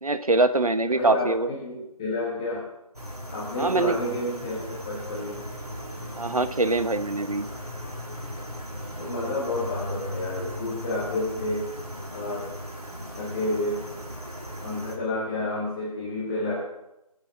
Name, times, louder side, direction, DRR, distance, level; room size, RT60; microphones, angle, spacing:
voice 1, 0.0-1.5 3.6-4.0 6.2-7.5, right 2 dB, 70° right, 11 dB, 1.1 m, -23 dB
voice 2, 0.9-2.7 3.3-4.6 4.8-5.5 9.0-11.7 12.1-12.5 13.2-13.8 14.6-16.6, left 2 dB, 5° left, -7 dB, 1.1 m, -30 dB
sound 1, 2.9-15.0, equal, 85° right, 3.5 m, -37 dB
21.0 x 7.2 x 5.0 m, 0.91 s
figure-of-eight pair, 165°, 19 cm